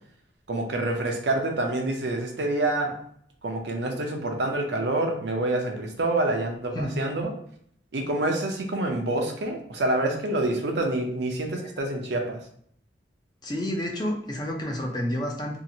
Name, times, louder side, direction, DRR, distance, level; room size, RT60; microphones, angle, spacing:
voice 1, 0.5-3.0 3.4-7.3 7.9-12.4, right 2 dB, 70° right, 3 dB, 0.6 m, -27 dB
voice 2, 13.4-15.6, equal, 25° left, 0 dB, 0.5 m, -29 dB
2.8 x 2.4 x 2.7 m, 0.64 s
head